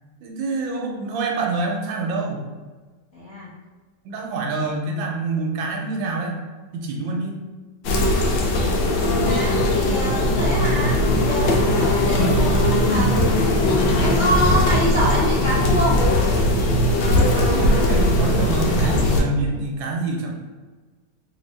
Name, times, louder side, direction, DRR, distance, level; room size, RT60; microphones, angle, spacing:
voice 1, 0.2-2.4 4.0-6.4 6.7-7.4 17.1-20.3, right 3 dB, 85° right, 1 dB, 1.3 m, -26 dB
voice 2, 3.1-3.5 8.7-13.2 14.0-16.0, right 1 dB, 55° left, -9 dB, 0.8 m, -26 dB
sound 1, 7.8-19.2, left 1 dB, 85° left, 1.4 m, -19 dB
3.1 x 2.8 x 3.2 m, 1.3 s
omnidirectional pair, 2.1 m